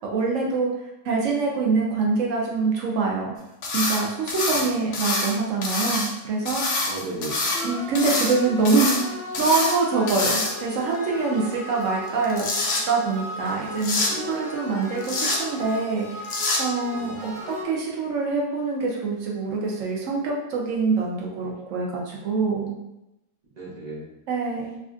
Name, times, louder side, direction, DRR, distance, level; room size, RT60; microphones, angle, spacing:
voice 1, 0.1-0.7 1.0-3.3 3.7-6.8 7.6-9.0 9.4-12.5 12.9-16.2 16.6-22.7 24.3-24.8, right 4 dB, 60° right, -2 dB, 0.9 m, -25 dB
sound 1, 3.6-4.0 4.3-5.3 5.6-6.1 6.5-7.6 7.9-8.3 8.6-9.0 9.3-9.8 10.1-10.7 12.1-12.8 13.8-14.1 15.0-15.4 16.2-16.6, left 2 dB, 75° left, 0.6 m, -25 dB
voice 2, 4.5-4.8 6.8-7.5 16.9-17.5 23.6-24.1, right 2 dB, 35° right, -8 dB, 0.7 m, -36 dB
sound 2, 7.5-17.6, left 2 dB, 50° left, 1.3 m, -36 dB
3.3 x 2.5 x 2.4 m, 0.89 s
omnidirectional pair, 1.9 m